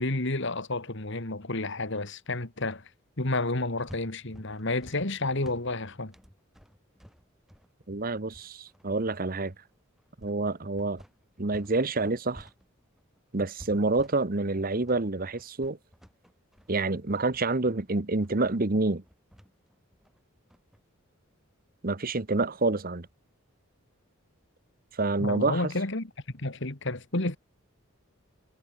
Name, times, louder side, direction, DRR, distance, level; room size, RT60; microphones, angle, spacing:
voice 1, 0.0-2.9 3.2-6.1 25.2-27.4, left 2 dB, 60° left, 2.5 m, -31 dB
sound 1, 3.5-11.8 12.0-20.8, equal, ahead, 6.6 m, -53 dB
voice 2, 7.9-9.5 10.2-11.0 11.4-12.5 13.3-15.8 16.7-19.0 21.8-23.1 25.0-25.6, right 3 dB, 45° right, 1.1 m, -27 dB
head